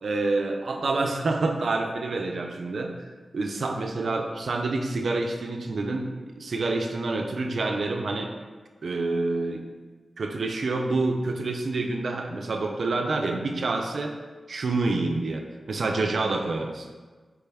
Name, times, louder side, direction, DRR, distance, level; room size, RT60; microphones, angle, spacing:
voice 1, 0.0-2.9 3.3-6.1 6.4-8.3 8.8-9.6 10.2-14.1 14.5-16.9, right 3 dB, 65° right, 3 dB, 0.3 m, -27 dB
4.6 x 2.2 x 3.3 m, 1.4 s
wide cardioid pair, 80°, 0 cm